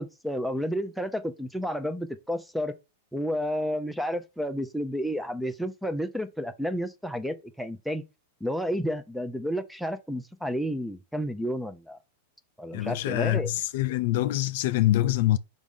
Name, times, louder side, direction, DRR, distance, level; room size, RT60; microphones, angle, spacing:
voice 1, 0.0-2.7 3.1-8.0 8.4-12.0 12.6-13.5, equal, ahead, 0.7 m, -31 dB
voice 2, 12.7-15.4, left 14 dB, 60° left, 0.4 m, -25 dB
5.3 x 3.5 x 5.5 m
hypercardioid pair, 100°, 0 cm